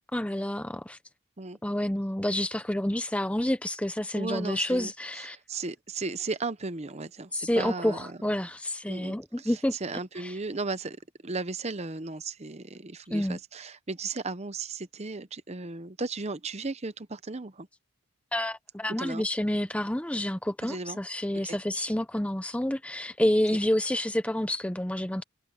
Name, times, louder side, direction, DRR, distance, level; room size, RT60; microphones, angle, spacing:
voice 1, 0.1-1.0 1.6-5.4 7.3-9.8 10.2-10.3 13.1-13.4 18.3-25.2, left 1 dB, 5° left, 0.5 m, -29 dB
voice 2, 4.1-4.9 5.3-8.2 8.9-17.7 19.0-19.2 20.6-21.0 21.4-21.6, right 3 dB, 30° right, 0.8 m, -35 dB
head